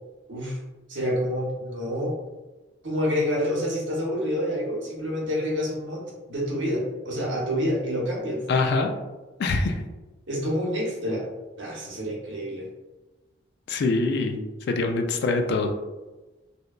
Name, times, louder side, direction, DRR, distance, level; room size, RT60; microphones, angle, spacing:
voice 1, 0.9-2.1 2.8-6.0 6.3-8.4 10.3-11.3 11.6-12.7, equal, 70° right, -3 dB, 0.8 m, -28 dB
voice 2, 8.5-8.9 9.4-9.8 13.7-14.4 14.7-15.7, left 3 dB, 60° left, 5 dB, 0.3 m, -24 dB
2.8 x 2.2 x 2.3 m, 1.1 s
head